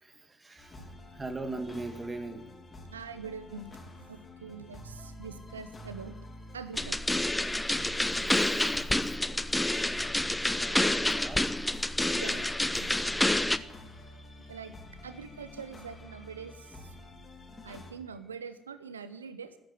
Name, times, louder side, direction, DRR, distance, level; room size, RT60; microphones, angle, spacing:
voice 1, 0.0-2.5 7.5-9.6 10.6-11.6 13.1-13.5, right 2 dB, 25° right, 8 dB, 2.0 m, -42 dB
sound 1, 0.6-17.9, left 1 dB, 30° left, 4.1 m, -49 dB
voice 2, 2.9-3.8 4.1-6.1 6.5-7.3 12.1-12.5 12.8-13.4 14.5-14.7 15.0-17.0 17.6-19.6, right 5 dB, 85° right, 13 dB, 0.7 m, -44 dB
sound 2, 6.8-13.6, left 1 dB, 10° left, 0.8 m, -28 dB
14.0 x 10.5 x 9.6 m, 0.82 s
figure-of-eight pair, 50°, 0 cm